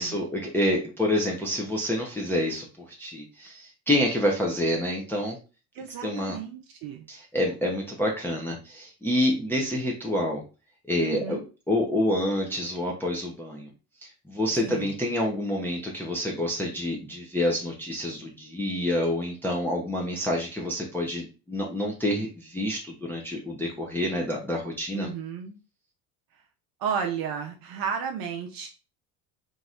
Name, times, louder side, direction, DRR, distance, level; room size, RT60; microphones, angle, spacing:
voice 1, 0.0-2.7 3.0-5.4 6.0-6.4 7.1-10.4 10.9-11.4 11.7-13.7 14.3-25.1, left 1 dB, 5° left, -2 dB, 0.6 m, -27 dB
voice 2, 5.7-7.1 11.0-11.4 14.6-15.0 24.9-25.5 26.8-28.7, right 7 dB, 50° right, 3 dB, 0.6 m, -33 dB
3.0 x 2.7 x 2.4 m, 0.33 s
hypercardioid pair, 75°, 44 cm